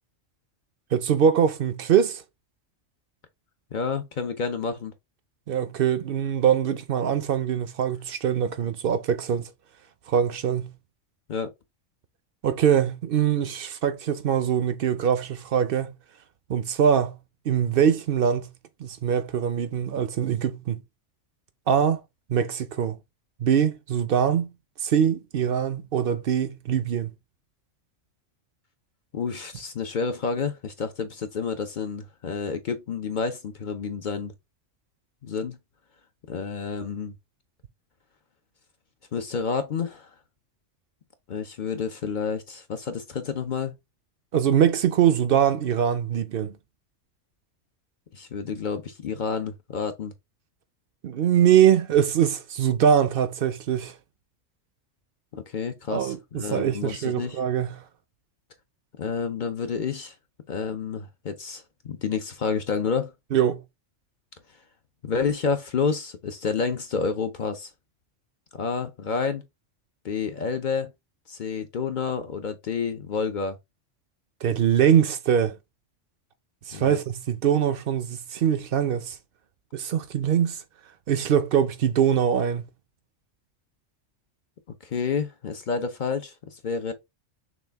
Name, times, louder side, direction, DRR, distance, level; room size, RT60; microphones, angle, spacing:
voice 1, 0.9-2.2 5.5-9.4 10.1-10.7 12.4-15.9 16.5-17.2 17.5-18.5 18.8-20.8 21.7-22.0 22.3-23.0 23.4-24.5 24.8-27.1 44.3-46.5 51.0-53.9 55.9-57.7 63.3-63.6 74.4-75.6 76.7-79.2 79.7-80.6 81.1-82.6, right 8 dB, 60° right, 0.7 m, -23 dB
voice 2, 3.7-4.9 11.3-11.5 29.1-34.3 35.2-35.6 36.3-37.1 39.1-40.1 41.3-43.7 48.1-50.1 55.3-57.4 59.0-60.1 60.5-63.1 65.0-67.7 68.5-69.4 70.0-70.9 71.3-73.6 76.7-77.0 84.8-86.9, left 5 dB, 50° left, 0.6 m, -29 dB
6.2 x 2.3 x 3.4 m
omnidirectional pair, 1.3 m